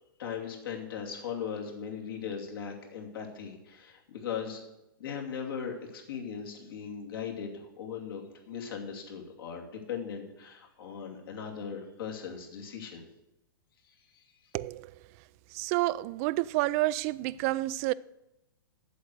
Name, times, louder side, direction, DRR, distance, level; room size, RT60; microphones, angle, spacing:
voice 1, 0.2-4.6 5.0-13.1 13.9-14.3, left 7 dB, 70° left, 2.7 m, -39 dB
voice 2, 14.5-14.9 15.5-17.9, right 18 dB, 40° right, 0.4 m, -29 dB
8.2 x 7.7 x 7.9 m
hypercardioid pair, 130°, 12 cm